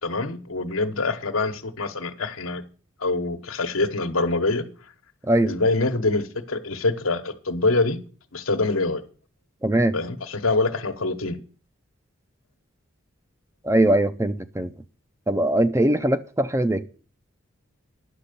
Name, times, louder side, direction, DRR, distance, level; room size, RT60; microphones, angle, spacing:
voice 1, 0.0-2.6 3.0-4.7 5.4-8.0 8.3-9.0 9.9-11.4, left 3 dB, 90° left, 1.2 m, -25 dB
voice 2, 5.3-5.6 9.6-10.0 13.6-14.7 15.3-16.8, right 1 dB, 15° right, 0.4 m, -21 dB
10.0 x 6.8 x 6.7 m
head